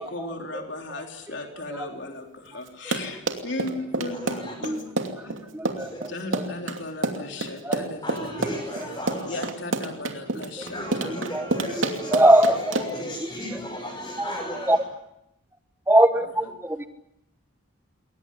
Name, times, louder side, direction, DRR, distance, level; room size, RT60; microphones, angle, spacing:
voice 1, 0.0-5.4 6.1-8.5 9.3-11.3 16.2-16.5, left 2 dB, 60° left, 3 dB, 3.6 m, -36 dB
Run, 2.7-13.1, right 2 dB, 70° right, 2.7 m, -28 dB
voice 2, 4.1-4.5 5.8-6.0 8.0-9.5 10.6-14.8, left 1 dB, 20° left, -3 dB, 6.5 m, -35 dB
voice 3, 5.5-6.4 7.6-7.8 11.3-11.4 12.1-12.6 14.7-14.8 15.9-16.9, right 1 dB, 10° right, 10 dB, 1.2 m, -20 dB
22.0 x 19.0 x 9.9 m, 0.85 s
head